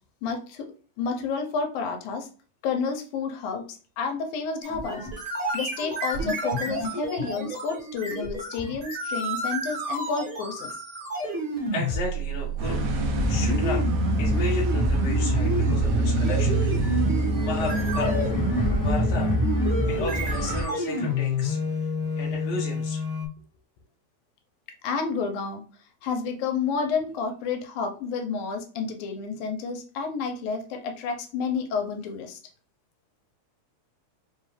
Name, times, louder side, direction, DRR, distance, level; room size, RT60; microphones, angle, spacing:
voice 1, 0.2-0.7 1.0-2.3 2.6-3.6 4.0-5.1 5.5-10.7 24.8-25.6 26.0-32.4, left 5 dB, 80° left, 4 dB, 2.0 m, -30 dB
sound 1, 4.6-23.3, equal, 55° right, 0.9 m, -29 dB
voice 2, 11.7-12.8 13.2-13.8 14.2-17.1 17.4-18.2 18.8-19.3 19.9-21.6 22.2-23.0, left 2 dB, 60° left, -3 dB, 0.7 m, -34 dB
sound 2, 12.6-20.6, left 1 dB, 20° left, 0.5 m, -26 dB
sound 3, 12.6-19.2, right 7 dB, 80° right, 1.5 m, -30 dB
4.9 x 2.3 x 3.2 m, 0.39 s
omnidirectional pair, 3.5 m